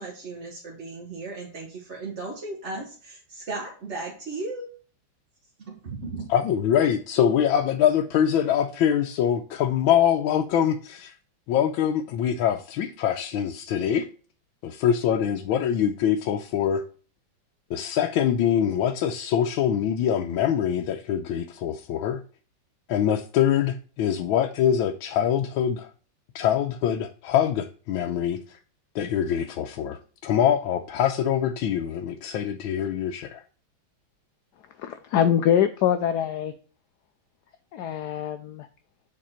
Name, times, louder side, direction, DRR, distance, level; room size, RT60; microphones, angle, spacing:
voice 1, 0.0-4.7 5.6-6.3, right 3 dB, 40° right, -2 dB, 1.5 m, -36 dB
voice 2, 6.3-11.1 11.5-14.1 14.6-16.8 17.7-22.2 22.9-25.9 26.3-28.6 28.9-33.4, left 9 dB, 90° left, 4 dB, 1.4 m, -24 dB
voice 3, 34.8-36.5 37.7-38.7, left 9 dB, 75° left, 9 dB, 1.0 m, -24 dB
7.5 x 4.6 x 4.3 m, 0.39 s
omnidirectional pair, 2.2 m